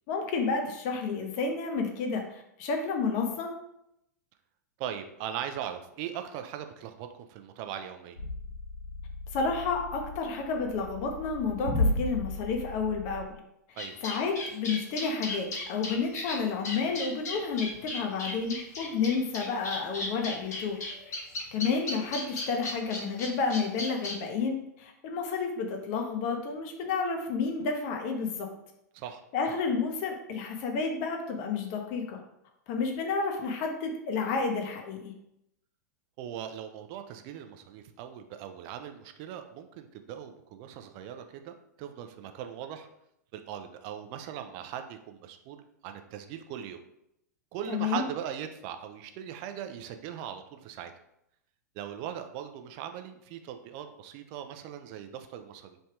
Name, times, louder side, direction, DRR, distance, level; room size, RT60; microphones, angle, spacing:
voice 1, 0.1-3.6 9.3-13.3 13.7-13.8 14.0-20.8 21.5-28.5 29.3-32.2 32.7-35.1 47.7-48.1, left 4 dB, 45° left, 3 dB, 0.7 m, -30 dB
voice 2, 4.8-8.2 13.8-14.0 28.9-29.2 36.2-42.9 43.3-46.8 47.5-50.9 51.7-55.8, right 9 dB, 40° right, 7 dB, 0.5 m, -40 dB
sound 1, 8.2-13.2, left 2 dB, 85° left, 1.6 m, -34 dB
sound 2, 13.8-24.1, left 2 dB, 65° left, 1.2 m, -36 dB
3.3 x 2.8 x 4.5 m, 0.80 s
figure-of-eight pair, 95°, 10 cm